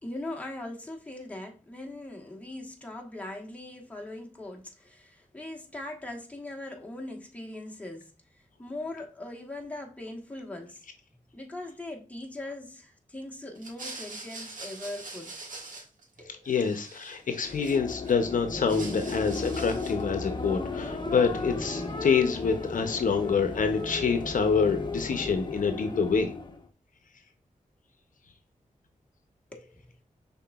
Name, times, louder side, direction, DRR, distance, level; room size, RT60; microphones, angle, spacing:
voice 1, 0.0-10.8 11.3-15.3 16.2-16.5 29.5-29.9, left 1 dB, 10° left, 1.2 m, -40 dB
sound 1, 13.6-16.2 16.4-18.1 18.5-20.1, right 3 dB, 75° right, 1.2 m, -43 dB
voice 2, 16.5-26.3, left 5 dB, 75° left, 0.6 m, -26 dB
sound 2, 17.3-26.6, left 3 dB, 35° left, 0.8 m, -35 dB
5.8 x 3.6 x 2.3 m
wide cardioid pair, 80°, 14 cm